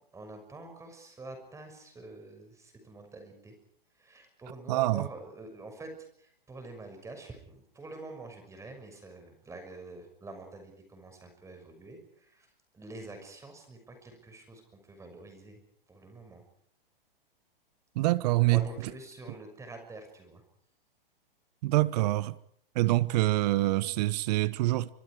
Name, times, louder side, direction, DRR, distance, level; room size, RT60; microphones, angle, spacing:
voice 1, 0.1-3.6 3.9-5.9 6.2-15.6 15.9-16.4 18.0-18.1 18.5-20.4, right 2 dB, 10° right, 6.3 m, -47 dB
voice 2, 4.7-5.0 17.9-18.6 21.6-22.3 22.7-24.9, right 18 dB, 45° right, 1.1 m, -25 dB
28.0 x 25.5 x 4.9 m
hypercardioid pair, 130°, 29 cm